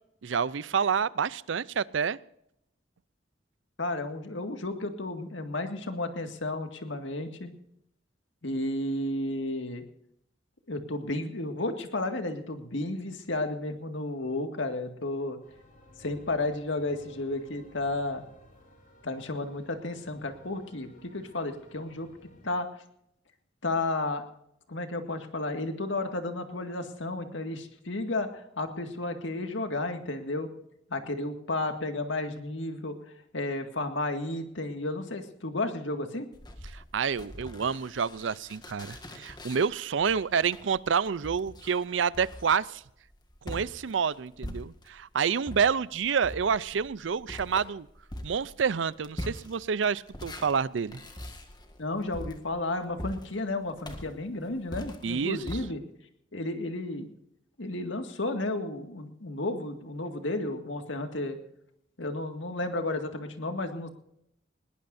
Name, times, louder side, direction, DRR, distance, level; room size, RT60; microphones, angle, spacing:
voice 1, 0.2-2.2 36.7-42.8 43.4-47.9 48.2-51.0 55.0-55.4, right 6 dB, 80° right, 19 dB, 0.5 m, -28 dB
voice 2, 3.8-7.5 8.4-9.8 10.7-15.4 16.0-18.2 19.0-22.1 22.4-22.7 23.6-24.2 24.7-30.5 30.9-33.0 33.3-36.3 51.8-55.8 56.3-57.1 57.6-61.4 62.0-63.9, left 2 dB, 85° left, 6 dB, 2.0 m, -32 dB
sound 1, 15.4-22.6, equal, 50° left, 5.6 m, -56 dB
sound 2, 36.3-45.1 45.4-55.6, left 1 dB, 25° left, 1.8 m, -43 dB
20.5 x 18.5 x 2.7 m, 0.76 s
head